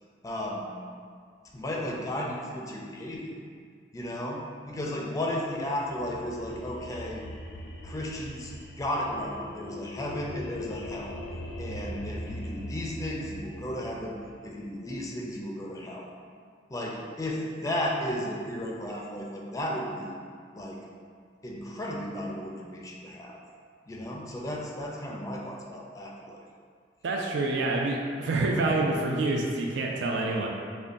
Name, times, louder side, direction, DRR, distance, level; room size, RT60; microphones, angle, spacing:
voice 1, 0.2-0.7 1.5-3.3 3.9-7.2 7.8-11.1 11.6-14.2 14.4-16.1 16.7-20.1 20.5-20.8 21.4-23.4 23.9-26.4, left 1 dB, 20° left, -2 dB, 0.4 m, -34 dB
sound 1, 5.8-15.1, left 1 dB, 90° left, 0.4 m, -41 dB
voice 2, 27.0-30.5, right 2 dB, 70° right, -1 dB, 0.4 m, -27 dB
5.1 x 2.2 x 2.6 m, 2.1 s
head